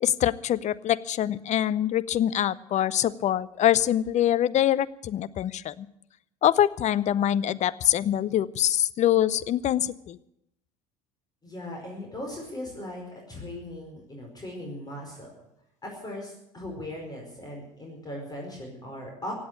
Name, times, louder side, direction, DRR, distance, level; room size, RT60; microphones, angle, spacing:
voice 1, 0.0-5.9 6.4-10.2, left 11 dB, 40° left, 19 dB, 0.7 m, -24 dB
voice 2, 11.4-15.3 15.8-19.3, left 1 dB, 20° left, 0 dB, 4.9 m, -38 dB
16.5 x 8.7 x 9.5 m, 0.82 s
figure-of-eight pair, 65°, 19 cm